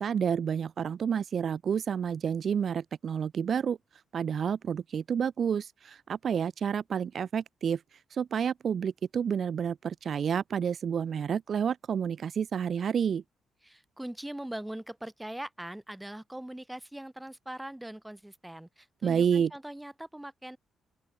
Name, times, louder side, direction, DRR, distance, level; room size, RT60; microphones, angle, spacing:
voice 1, 0.0-3.8 4.1-7.8 8.1-13.2 19.0-19.5, right 7 dB, 45° right, 0.4 m, -29 dB
voice 2, 13.6-20.6, right 1 dB, 5° right, 1.5 m, -41 dB
open air
cardioid pair, 145°, 0 cm